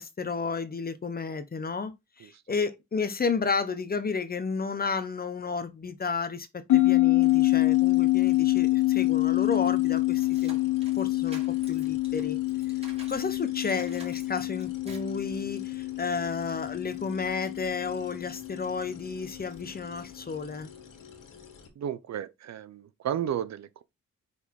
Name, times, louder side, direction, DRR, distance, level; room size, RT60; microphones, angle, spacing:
voice 1, 0.0-10.6 11.0-12.4 13.1-20.7, left 5 dB, 30° left, 0.8 m, -32 dB
sound 1, 6.7-19.5, left 18 dB, 65° left, 1.0 m, -26 dB
sound 2, 7.2-21.7, left 6 dB, 90° left, 1.8 m, -51 dB
sound 3, 9.7-13.2 13.6-15.2, right 2 dB, 20° right, 3.1 m, -49 dB
voice 2, 21.8-23.8, right 10 dB, 60° right, 0.6 m, -33 dB
5.5 x 4.2 x 4.6 m
cardioid pair, 125°, 31 cm